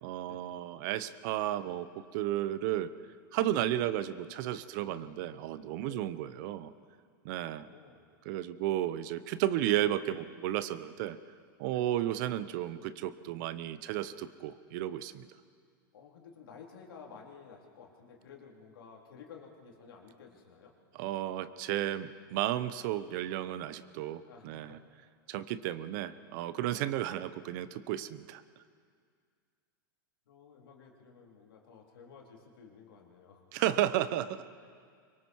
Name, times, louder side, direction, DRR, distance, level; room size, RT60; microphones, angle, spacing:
voice 1, 0.0-2.9 3.3-6.7 7.2-7.7 8.2-11.2 11.6-15.3 21.0-24.8 25.3-28.4 33.5-34.4, right 13 dB, 55° right, 14 dB, 0.9 m, -33 dB
voice 2, 4.8-5.1 5.8-6.1 7.4-8.1 11.7-11.9 15.9-20.7 24.3-24.8 26.6-27.0 30.3-33.5 34.6-34.7, left 6 dB, 80° left, 0 dB, 3.8 m, -53 dB
24.5 x 22.5 x 4.7 m, 2.1 s
hypercardioid pair, 120°, 12 cm